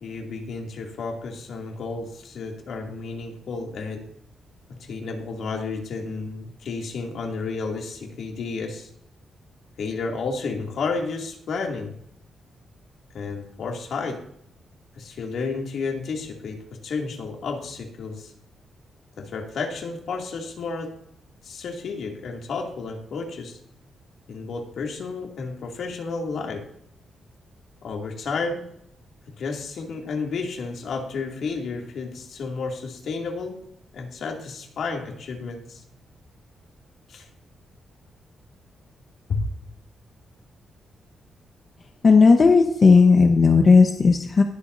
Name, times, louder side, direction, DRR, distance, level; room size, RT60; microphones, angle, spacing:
voice 1, 0.0-4.0 4.8-8.9 9.8-11.9 13.1-14.2 15.0-18.3 19.2-21.0 21.4-23.6 24.3-26.7 27.8-28.7 29.4-33.7 33.9-35.8 37.1-37.3 39.3-39.4, left 4 dB, 65° left, 1 dB, 2.5 m, -31 dB
voice 2, 42.0-44.4, left 4 dB, 35° left, 3 dB, 1.0 m, -15 dB
21.0 x 8.0 x 2.7 m, 0.69 s
wide cardioid pair, 155°, 0 cm